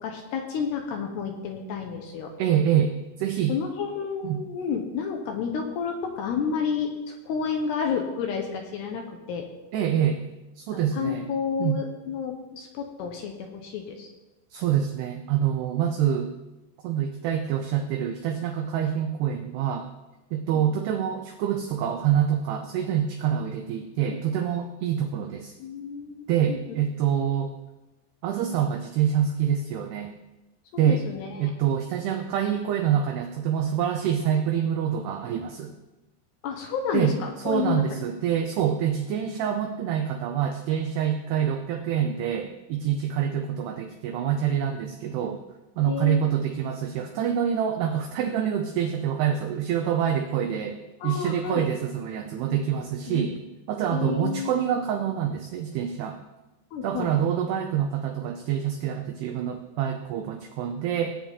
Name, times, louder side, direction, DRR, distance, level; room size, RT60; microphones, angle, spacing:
voice 1, 0.0-2.3 3.5-9.5 10.9-14.1 20.5-20.7 24.1-24.2 25.6-26.6 30.7-31.5 36.4-37.8 45.9-46.2 51.0-51.7 53.1-53.4 53.9-54.7 56.7-57.1, left 6 dB, 70° left, 3 dB, 2.8 m, -30 dB
voice 2, 2.4-3.5 4.2-4.4 9.7-10.2 10.6-11.3 11.6-11.8 14.5-16.3 16.8-19.9 20.3-25.5 26.3-27.5 28.2-30.1 30.8-31.0 31.4-35.7 36.9-37.1 37.5-45.4 45.8-53.3 53.7-56.2 56.8-61.2, right 9 dB, 90° right, 5 dB, 2.3 m, -26 dB
18.5 x 8.8 x 3.6 m, 1.1 s
omnidirectional pair, 5.6 m